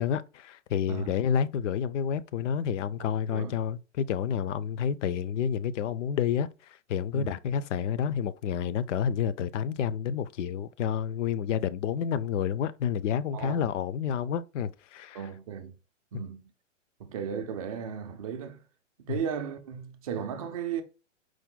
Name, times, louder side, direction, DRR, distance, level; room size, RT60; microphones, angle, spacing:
voice 1, 0.0-6.5 6.9-15.2 16.1-16.2 19.1-19.2, left 8 dB, 65° left, 0.5 m, -29 dB
voice 2, 0.9-1.2 3.0-3.6 7.1-7.4 13.3-13.6 15.1-15.8 16.1-16.4 17.0-18.6 19.0-20.8, right 7 dB, 30° right, 0.3 m, -36 dB
4.7 x 2.1 x 3.7 m
hypercardioid pair, 130°, 39 cm